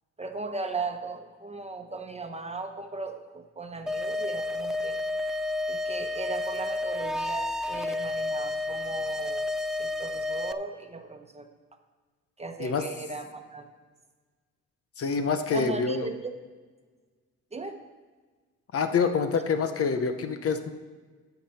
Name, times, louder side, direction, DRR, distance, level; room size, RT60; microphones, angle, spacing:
voice 1, 0.2-5.0 5.7-11.5 12.4-13.7 15.5-16.3 17.5-17.8, right 3 dB, 20° right, 5 dB, 1.0 m, -37 dB
sound 1, 3.9-10.5, left 2 dB, ahead, 0.4 m, -31 dB
voice 2, 15.0-16.1 18.7-20.7, left 5 dB, 50° left, 8 dB, 0.9 m, -26 dB
11.5 x 6.0 x 5.7 m, 1.4 s
cardioid pair, 90°, 30 cm